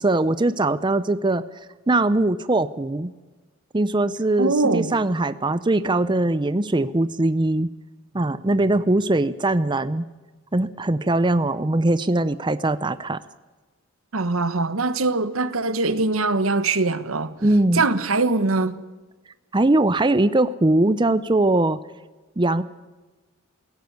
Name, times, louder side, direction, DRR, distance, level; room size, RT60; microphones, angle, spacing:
voice 1, 0.0-1.4 1.9-3.1 3.7-7.7 8.1-10.0 10.5-13.2 17.4-17.8 19.5-21.8 22.4-22.6, right 2 dB, 20° right, 0.6 m, -21 dB
voice 2, 4.4-4.9 14.1-17.3 17.7-18.8, right 3 dB, 85° right, 1.3 m, -22 dB
17.5 x 17.0 x 9.5 m
head